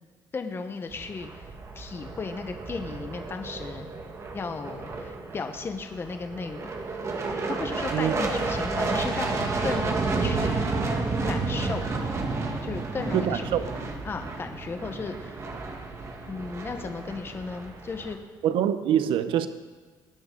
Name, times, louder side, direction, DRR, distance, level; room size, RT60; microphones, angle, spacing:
voice 1, 0.3-1.3 1.8-3.9 4.3-6.7 7.5-10.6 11.3-11.8 12.6-13.5 14.0-15.5 16.2-18.2, left 4 dB, 25° left, 6 dB, 1.0 m, -35 dB
sound 1, 0.9-18.1, right 3 dB, 35° right, 1.5 m, -31 dB
voice 2, 13.1-13.6 18.4-19.5, right 10 dB, 80° right, 11 dB, 0.7 m, -24 dB
18.5 x 10.5 x 3.8 m, 1.5 s
cardioid pair, 145°, 9 cm